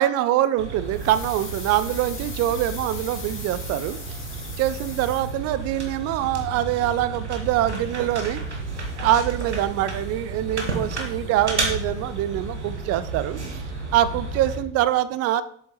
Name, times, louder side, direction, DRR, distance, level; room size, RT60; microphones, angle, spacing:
voice 1, 0.0-4.2 4.6-8.4 8.9-13.6 13.9-15.4, right 12 dB, 45° right, 14 dB, 0.5 m, -24 dB
sound 1, 0.6-14.6, right 3 dB, 90° right, 0.9 m, -32 dB
sound 2, 0.9-5.7 6.0-6.1, left 3 dB, 35° left, 2.3 m, -39 dB
7.7 x 7.0 x 3.1 m, 0.63 s
figure-of-eight pair, 50°, 33 cm